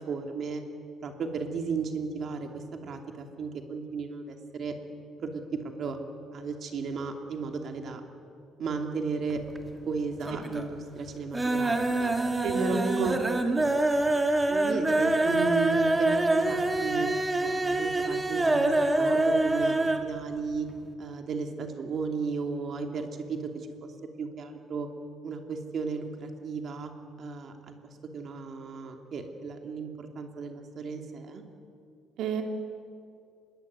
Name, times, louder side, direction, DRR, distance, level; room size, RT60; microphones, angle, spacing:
voice 1, 0.1-0.6 1.0-4.7 5.2-6.0 6.3-8.0 8.6-9.4 9.9-12.1 12.7-13.4 14.5-17.1 17.4-19.7 20.0-20.7 21.0-23.7 24.2-24.9 25.2-26.9 27.2-27.7 28.1-31.4, right 5 dB, 40° right, 4 dB, 2.8 m, -34 dB
sound 1, 9.3-9.9 10.2-10.7 11.0-20.1 20.4-20.5 20.8-20.9, right 2 dB, 10° right, 1.8 m, -26 dB
voice 2, 12.4-13.1 32.2-32.4, right 5 dB, 60° right, 4 dB, 2.6 m, -29 dB
25.0 x 21.5 x 9.6 m, 2.4 s
cardioid pair, 165°, 0 cm